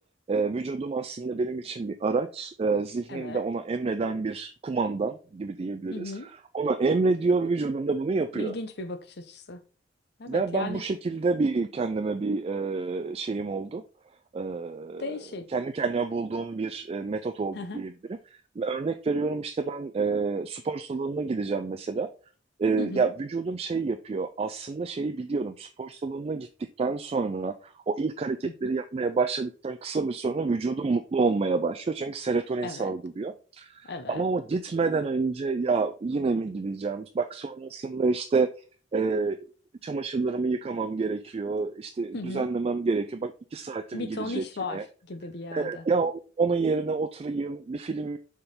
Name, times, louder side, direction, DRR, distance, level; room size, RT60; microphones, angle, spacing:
voice 1, 0.3-6.1 6.5-8.5 10.3-13.8 14.3-15.2 15.5-17.9 18.6-22.1 22.6-26.5 26.8-38.5 38.9-39.4 39.8-44.4 44.7-44.8 45.5-48.2, right 4 dB, 35° right, 0.3 m, -28 dB
voice 2, 3.1-3.4 5.9-6.3 8.4-9.6 10.2-10.8 15.0-15.4 17.5-17.8 22.8-23.1 28.4-28.7 32.6-32.9 33.9-34.2 42.1-42.5 43.9-45.8, left 2 dB, 65° left, 0.8 m, -36 dB
6.8 x 3.7 x 3.9 m
head